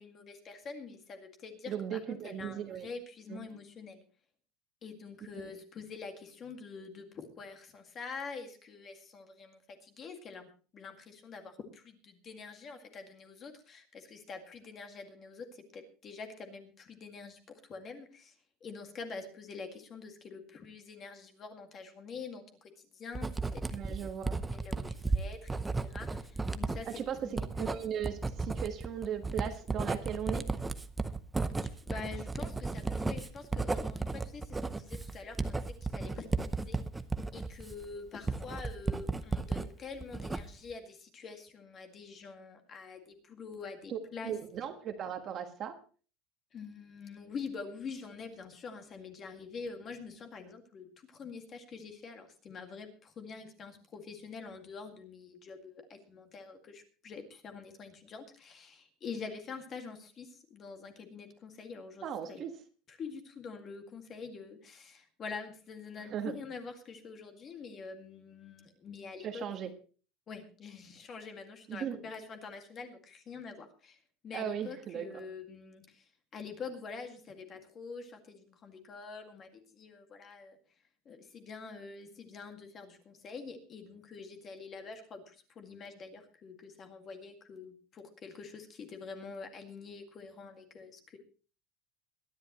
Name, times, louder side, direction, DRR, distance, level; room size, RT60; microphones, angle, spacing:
voice 1, 0.0-4.0 4.8-17.4 17.7-18.3 18.6-23.9 24.5-27.7 31.6-36.8 37.3-44.4 46.5-62.4 62.9-69.7 70.3-76.0 76.3-80.6 81.1-91.2, left 5 dB, 25° left, 6 dB, 2.1 m, -46 dB
voice 2, 1.7-2.9 3.3-3.4 5.3-5.5 23.7-24.4 26.8-27.2 27.6-30.4 43.9-44.0 44.2-45.8 62.0-62.5 66.0-66.3 69.2-69.7 71.7-72.0 74.3-75.1, right 9 dB, 30° right, 6 dB, 1.5 m, -37 dB
Writing, 23.1-39.7 40.0-40.7, right 3 dB, 10° right, 0.7 m, -34 dB
22.5 x 11.0 x 3.1 m, 0.37 s
cardioid pair, 170°, 0 cm